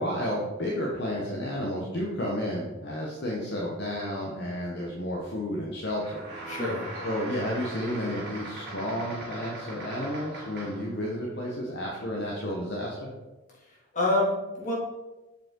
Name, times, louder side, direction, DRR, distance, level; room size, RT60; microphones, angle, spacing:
voice 1, 0.0-6.2 7.0-13.1, equal, 55° left, -3 dB, 1.1 m, -31 dB
sound 1, 6.0-10.9, right 2 dB, 50° right, 2.2 m, -40 dB
voice 2, 6.5-6.9 13.9-14.7, left 2 dB, 35° left, -6 dB, 2.4 m, -26 dB
7.2 x 5.3 x 3.8 m, 1.1 s
head